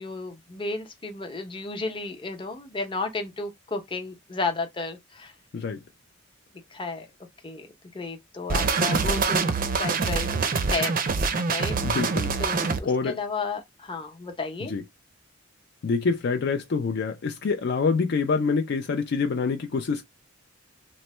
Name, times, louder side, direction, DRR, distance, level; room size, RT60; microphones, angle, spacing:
voice 1, 0.0-5.3 6.7-7.1 7.4-7.7 7.9-10.3 10.7-10.9 11.5-11.7 12.4-14.7, left 3 dB, 25° left, 0.7 m, -33 dB
sound 1, 8.5-12.8, right 4 dB, 45° right, 0.4 m, -25 dB
voice 2, 11.8-12.3 12.8-13.2 14.7-14.8 15.8-20.0, left 4 dB, 55° left, 0.4 m, -26 dB
3.1 x 2.1 x 4.2 m
head